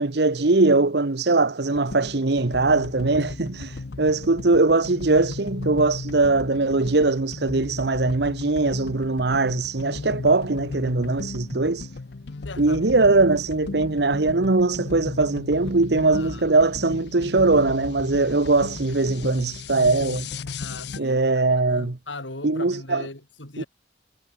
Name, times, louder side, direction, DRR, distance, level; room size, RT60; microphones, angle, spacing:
voice 1, 0.0-11.9 12.6-20.3 21.0-22.0 22.4-23.1 23.6-23.7, right 3 dB, 60° right, 1.0 m, -21 dB
sound 1, 1.7-21.0, left 3 dB, 65° left, 0.7 m, -36 dB
voice 2, 12.4-13.0 16.1-16.4 20.6-21.2 21.7-23.7, left 2 dB, 90° left, 5.7 m, -38 dB
head